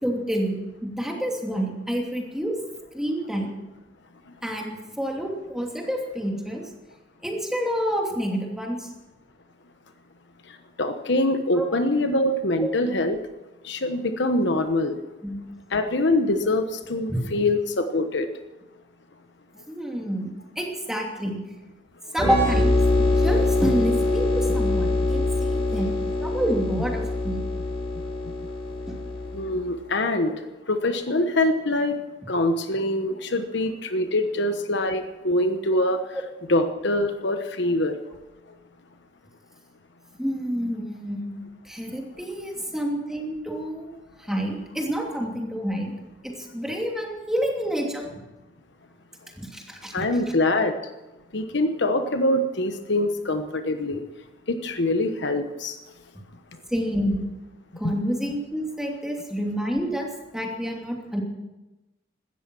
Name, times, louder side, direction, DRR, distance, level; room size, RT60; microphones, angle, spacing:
voice 1, 0.0-2.6 2.9-3.5 4.4-6.6 7.2-8.9 11.5-11.7 12.6-12.7 15.2-15.5 17.1-17.3 19.7-20.3 20.6-21.4 22.1-27.4 28.9-29.0 40.2-43.9 44.2-45.9 46.2-48.1 49.4-50.0 56.7-57.2 57.8-60.1 60.3-61.2, equal, 5° right, 0 dB, 2.8 m, -28 dB
voice 2, 10.8-13.2 13.6-15.0 15.7-18.3 29.3-30.4 30.7-31.9 32.3-36.0 36.5-37.9 49.9-50.7 51.3-54.0 54.5-55.7 57.8-57.9, left 1 dB, 65° left, 7 dB, 1.2 m, -24 dB
sound 1, 22.2-29.7, left 2 dB, 35° left, 5.8 m, -24 dB
17.0 x 13.0 x 6.2 m, 1.0 s
head